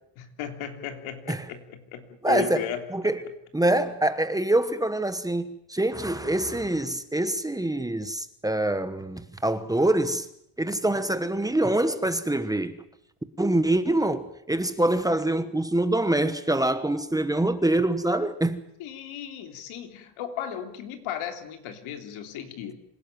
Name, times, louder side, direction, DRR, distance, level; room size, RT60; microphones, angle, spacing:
voice 1, 0.1-2.8 18.8-22.7, left 8 dB, 90° left, 3.5 m, -35 dB
voice 2, 2.2-2.6 2.9-3.2 3.5-10.3 10.6-12.8 13.4-18.6, right 1 dB, 10° right, 1.2 m, -25 dB
26.0 x 17.0 x 9.2 m
cardioid pair, 150°, 47 cm